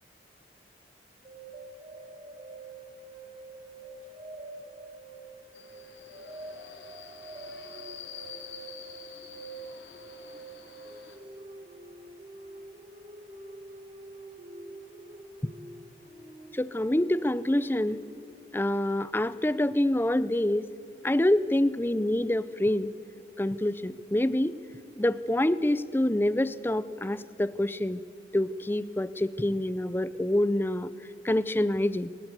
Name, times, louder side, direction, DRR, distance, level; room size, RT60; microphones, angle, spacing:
sound 1, 1.2-18.7, right 2 dB, 30° right, 1.8 m, -46 dB
Subway metro underground, 5.5-11.2, left 7 dB, 90° left, 2.7 m, -47 dB
voice 1, 16.5-18.0 18.5-20.7 21.0-22.9 23.4-24.6 25.0-28.0 28.3-30.9 31.2-32.1, left 1 dB, 10° left, 16 dB, 0.4 m, -26 dB
21.5 x 19.5 x 8.2 m, 2.4 s
head